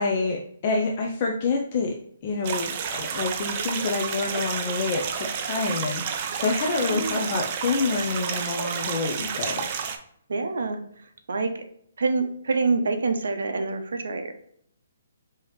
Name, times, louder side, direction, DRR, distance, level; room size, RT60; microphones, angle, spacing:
voice 1, 0.0-2.0 2.2-9.7, left 3 dB, 30° left, 1 dB, 0.4 m, -27 dB
sound 1, 2.4-10.0, right 7 dB, 30° right, 0.4 m, -30 dB
voice 2, 6.9-7.4 10.3-10.8 11.3-11.6 12.0-14.3, right 3 dB, 75° right, 6 dB, 0.7 m, -26 dB
4.8 x 2.8 x 3.0 m, 0.67 s
hypercardioid pair, 170°, 0 cm